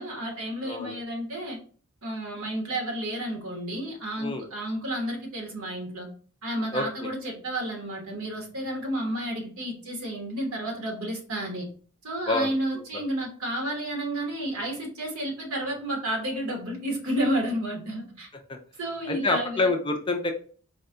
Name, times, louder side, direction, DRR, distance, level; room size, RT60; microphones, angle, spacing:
voice 1, 0.0-1.6 2.0-6.1 6.4-11.7 12.0-18.3 18.8-19.7, right 1 dB, 75° right, 1 dB, 1.3 m, -31 dB
voice 2, 0.6-1.0 4.2-4.4 6.7-7.1 12.3-12.5 12.9-13.0 18.5-18.6 19.1-20.3, left 2 dB, 20° left, 4 dB, 0.4 m, -27 dB
4.3 x 2.2 x 3.7 m, 0.43 s
head